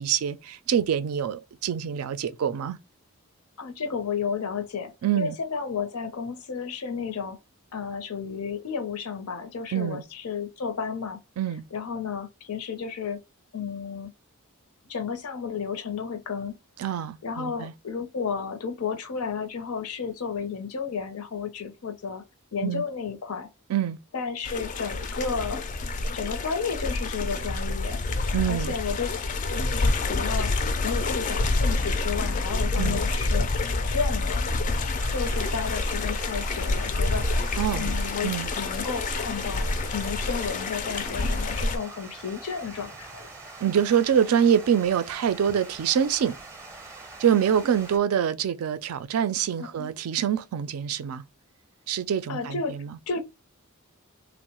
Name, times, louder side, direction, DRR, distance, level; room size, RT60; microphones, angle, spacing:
voice 1, 0.0-2.8 5.0-5.4 9.7-10.0 11.4-11.6 16.8-17.7 22.6-22.8 23.7-24.0 28.3-28.7 32.8-33.0 37.6-37.9 38.2-38.5 43.6-46.3 47.2-51.2 51.9-53.0, right 8 dB, 80° right, 0.3 m, -25 dB
voice 2, 3.6-7.4 7.7-11.2 11.7-13.2 13.5-14.1 14.9-16.5 17.2-22.2 22.5-23.5 24.1-25.6 26.1-28.0 28.5-29.1 29.5-30.5 30.8-33.5 33.8-34.5 35.1-37.3 37.8-43.3 49.6-49.9 52.3-52.8 53.1-53.2, left 5 dB, 85° left, 0.6 m, -32 dB
sound 1, 24.4-41.8, left 3 dB, 35° left, 0.3 m, -27 dB
Water, 35.0-48.0, right 3 dB, 15° right, 0.5 m, -44 dB
3.0 x 2.0 x 2.8 m
head